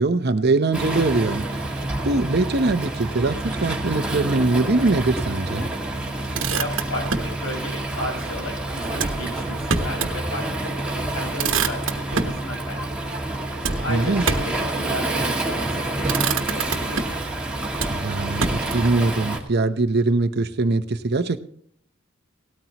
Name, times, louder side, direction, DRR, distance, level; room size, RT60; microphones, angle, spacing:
voice 1, 0.0-5.7 13.9-14.2 17.9-21.4, right 3 dB, 50° right, 0.8 m, -22 dB
Waves surf, 0.7-19.4, right 2 dB, 5° right, 2.1 m, -28 dB
Motor vehicle (road), 6.1-7.4 8.9-10.2 10.6-10.7 11.0-12.4 13.6-14.6 15.5-15.7 16.0-17.3 17.8-19.0, right 5 dB, 65° right, 1.2 m, -27 dB
voice 2, 6.3-13.2 13.8-17.0, left 1 dB, 75° left, 5.0 m, -34 dB
18.0 x 13.5 x 3.0 m
head